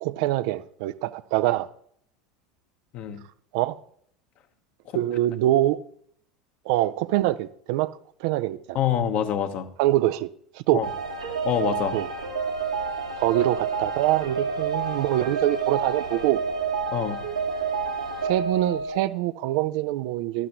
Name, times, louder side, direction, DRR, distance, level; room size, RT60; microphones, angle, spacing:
voice 1, 0.0-1.7 3.5-3.8 4.9-5.8 6.7-7.9 8.2-8.8 9.8-10.3 10.5-10.8 11.9-12.1 13.2-16.4 18.2-20.5, right 15 dB, 55° right, 0.5 m, -24 dB
voice 2, 8.7-9.7 10.7-10.9 11.4-12.0 16.9-17.2, left 9 dB, 45° left, 1.2 m, -25 dB
sound 1, 10.8-19.0, right 5 dB, 90° right, 2.1 m, -29 dB
12.0 x 12.0 x 3.1 m
figure-of-eight pair, 75°, 3 cm